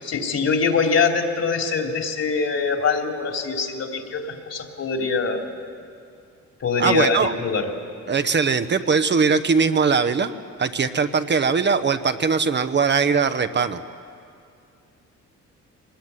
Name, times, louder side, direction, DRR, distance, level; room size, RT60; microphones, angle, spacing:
voice 1, 0.0-5.5 6.6-7.7, left 4 dB, 55° left, 3 dB, 3.3 m, -23 dB
voice 2, 6.8-7.3 8.1-10.3 10.6-13.8, right 5 dB, 35° right, 9 dB, 0.9 m, -20 dB
23.5 x 19.5 x 9.7 m, 2.4 s
cardioid pair, 90°, 30 cm